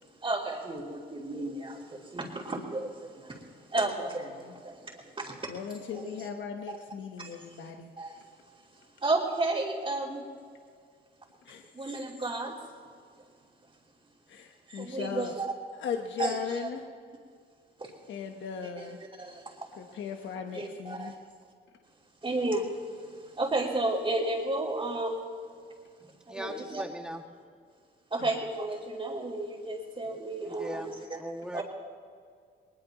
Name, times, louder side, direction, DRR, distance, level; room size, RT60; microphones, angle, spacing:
voice 1, 0.2-3.4 3.7-5.5 6.0-6.1 7.2-7.3 8.0-8.1 9.0-10.2 11.7-12.5 14.7-15.4 16.2-16.7 17.8-17.9 18.8-18.9 19.2-19.5 20.5-21.1 22.2-22.7 23.4-25.2 26.3-26.8 28.1-30.9 31.5-31.6, right 2 dB, 25° right, -7 dB, 3.1 m, -32 dB
voice 2, 4.1-4.6 5.5-7.9 11.4-11.9 14.3-15.4 15.7-16.8 18.1-19.0 19.8-21.1 28.2-28.4, left 7 dB, 70° left, 4 dB, 1.2 m, -38 dB
voice 3, 26.0-27.2 30.4-31.6, right 1 dB, 5° right, 2 dB, 2.1 m, -40 dB
21.0 x 20.5 x 3.0 m, 2.1 s
cardioid pair, 90°, 20 cm